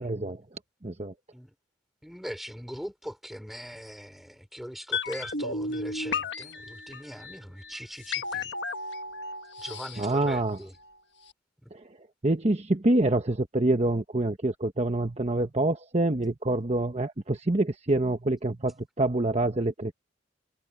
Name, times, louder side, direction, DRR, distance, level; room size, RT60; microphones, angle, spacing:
voice 1, 0.0-1.1 10.0-10.6 11.7-19.9, right 2 dB, 35° right, 1.1 m, -26 dB
voice 2, 2.0-8.5 9.6-10.7 11.6-11.7, equal, ahead, 4.1 m, -40 dB
sound 1, 4.9-11.0 11.2-11.3, left 4 dB, 65° left, 1.6 m, -34 dB
head